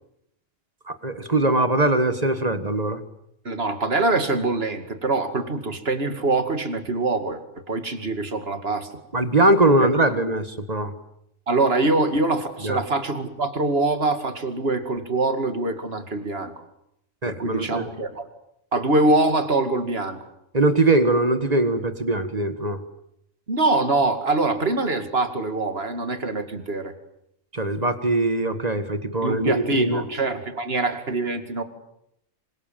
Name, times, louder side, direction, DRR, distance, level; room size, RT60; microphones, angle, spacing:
voice 1, 0.9-3.0 9.1-10.9 12.6-12.8 17.2-17.9 20.5-22.8 27.5-30.0, right 2 dB, 30° right, 10 dB, 1.8 m, -21 dB
voice 2, 3.4-7.4 7.7-8.9 9.8-9.9 11.5-16.6 17.2-18.3 18.7-20.2 23.5-26.9 29.2-31.6, right 2 dB, 50° right, 8 dB, 2.6 m, -24 dB
27.0 x 25.5 x 7.6 m, 0.77 s
omnidirectional pair, 1.4 m